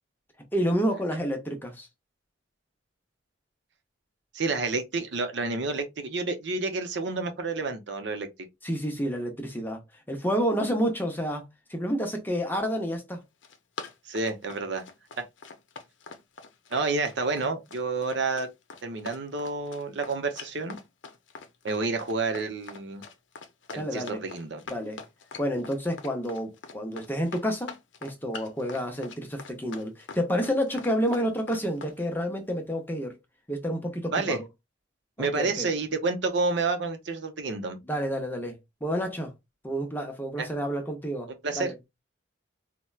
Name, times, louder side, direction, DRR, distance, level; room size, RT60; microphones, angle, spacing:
voice 1, 0.5-1.9 8.6-9.8 10.1-13.2 23.7-24.2 24.7-25.0 25.4-33.2 33.5-34.5 35.2-35.7 37.9-39.3 39.6-41.3 41.5-41.7, equal, 10° left, 0.6 m, -29 dB
voice 2, 4.3-8.3 14.1-14.8 16.7-18.5 18.8-20.8 21.6-23.0 23.7-24.6 34.1-34.4 35.2-37.8 40.4-40.5 41.4-41.7, right 3 dB, 65° right, 0.6 m, -29 dB
Run, 13.2-31.9, left 4 dB, 70° left, 0.6 m, -43 dB
4.2 x 2.1 x 2.3 m
head